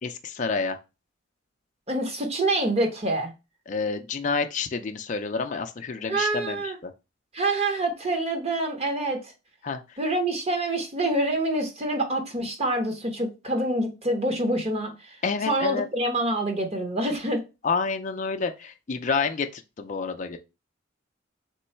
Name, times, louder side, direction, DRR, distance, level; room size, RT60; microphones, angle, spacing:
voice 1, 0.0-0.8 3.7-6.9 9.6-9.8 15.2-15.9 17.6-20.4, left 4 dB, 40° left, 0.4 m, -29 dB
voice 2, 1.9-3.3 6.1-6.8 7.3-9.2 10.0-14.9 15.5-17.4, right 1 dB, 30° right, 0.9 m, -26 dB
3.7 x 3.0 x 4.4 m
head